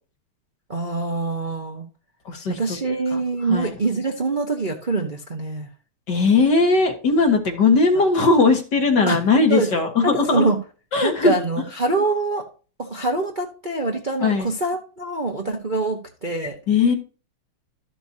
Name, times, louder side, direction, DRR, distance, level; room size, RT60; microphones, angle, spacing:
voice 1, 0.7-1.9 2.5-5.7 7.9-8.0 9.1-9.2 9.5-9.7 10.0-10.6 11.0-12.4 12.8-16.6, right 3 dB, 30° right, 1 dB, 1.0 m, -24 dB
voice 2, 2.3-2.6 3.5-3.7 6.1-10.5 10.9-11.3 14.2-14.5 16.7-16.9, left 4 dB, 55° left, 4 dB, 2.1 m, -18 dB
13.5 x 6.9 x 2.8 m, 0.35 s
omnidirectional pair, 2.4 m